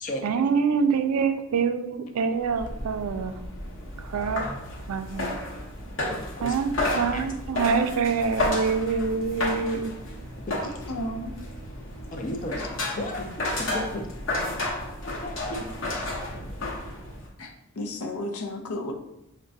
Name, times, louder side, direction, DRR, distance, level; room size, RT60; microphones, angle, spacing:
voice 1, 0.2-3.4 4.1-4.4 4.9-5.3 6.4-9.9, right 5 dB, 85° right, 8 dB, 0.4 m, -25 dB
sound 1, 2.4-17.3, left 1 dB, 55° left, 0.8 m, -32 dB
voice 2, 10.6-11.3 12.6-12.7 17.4-18.9, left 1 dB, 85° left, 4 dB, 0.5 m, -33 dB
voice 3, 12.1-12.6 13.0-13.2 13.7-14.0 15.2-15.7, left 1 dB, 35° left, 3 dB, 0.5 m, -33 dB
5.8 x 2.2 x 2.6 m, 0.84 s
head